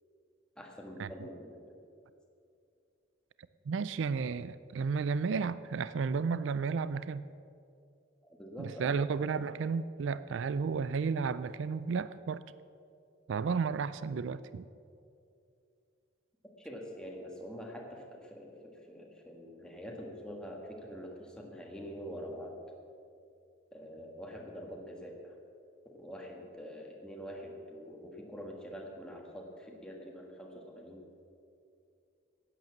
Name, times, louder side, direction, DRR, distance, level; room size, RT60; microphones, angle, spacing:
voice 1, 0.6-1.7 8.4-9.0 16.6-22.5 23.7-25.4 25.8-31.1, equal, 5° left, -1 dB, 1.5 m, -45 dB
voice 2, 3.7-7.2 8.6-12.4 13.3-14.7, right 5 dB, 65° right, 15 dB, 0.4 m, -33 dB
11.0 x 9.2 x 7.3 m, 2.5 s
head